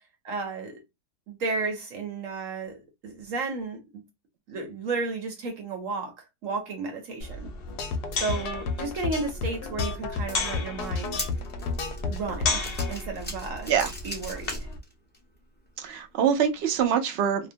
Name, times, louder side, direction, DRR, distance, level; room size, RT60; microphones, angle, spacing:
voice 1, 0.2-0.8 1.3-4.0 4.5-7.5 8.1-11.2 12.1-12.6 12.9-13.7 14.0-14.7, right 3 dB, 60° right, 1.0 m, -33 dB
sound 1, 7.2-14.8, left 3 dB, 55° left, 0.6 m, -35 dB
sound 2, 7.7-13.0, left 4 dB, 75° left, 1.1 m, -32 dB
sound 3, 10.8-15.2 15.7-15.8 16.8-16.9, left 1 dB, 10° left, 0.6 m, -38 dB
voice 2, 15.8-17.5, right 8 dB, 85° right, 0.5 m, -24 dB
2.8 x 2.1 x 2.5 m
omnidirectional pair, 1.8 m